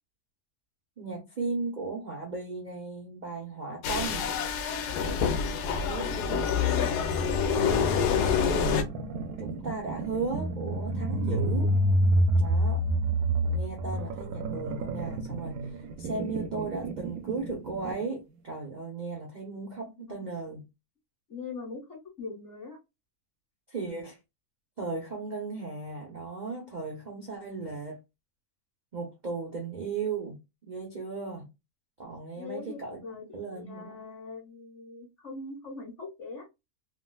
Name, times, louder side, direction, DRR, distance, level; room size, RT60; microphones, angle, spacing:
voice 1, 1.0-4.3 5.6-6.2 8.1-8.7 9.4-11.7 12.4-12.8 13.5-20.6 23.7-24.2 24.8-28.0 28.9-30.4 30.7-31.4 32.0-33.0 33.3-34.0, right 4 dB, 50° right, 0.5 m, -36 dB
sound 1, 3.8-8.8, left 6 dB, 80° left, 1.1 m, -27 dB
voice 2, 5.8-7.1 20.0-20.3 21.3-22.8 32.4-36.5, left 4 dB, 50° left, 1.4 m, -42 dB
sound 2, 7.6-18.0, right 1 dB, 70° right, 1.0 m, -29 dB
3.5 x 2.4 x 2.2 m
omnidirectional pair, 1.7 m